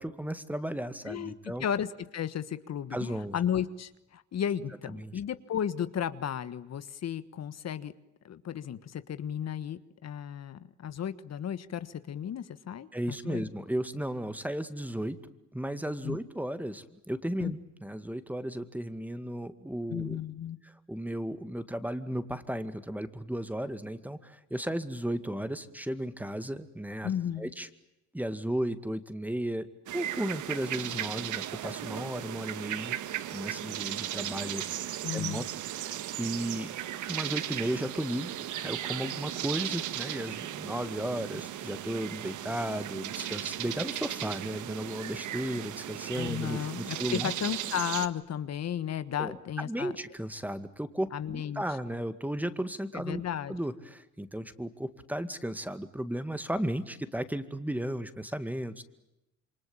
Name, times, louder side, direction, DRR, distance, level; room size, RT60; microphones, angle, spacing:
voice 1, 0.0-1.7 2.9-3.4 4.9-5.1 12.9-15.2 15.5-20.2 20.6-27.1 27.4-27.7 28.1-29.7 29.9-33.0 33.3-35.5 35.8-36.7 37.1-38.3 38.6-47.3 49.2-53.2 53.5-58.8, right 1 dB, 5° right, 11 dB, 2.1 m, -35 dB
voice 2, 1.1-7.9 8.2-13.5 16.0-16.2 17.4-17.5 19.9-20.6 27.0-27.5 35.0-35.5 46.1-49.9 51.1-51.6 52.9-53.6, left 9 dB, 60° left, 13 dB, 1.5 m, -34 dB
sound 1, 29.9-48.1, right 12 dB, 80° right, 1.6 m, -36 dB
28.0 x 24.0 x 8.9 m, 0.90 s
cardioid pair, 90°, 30 cm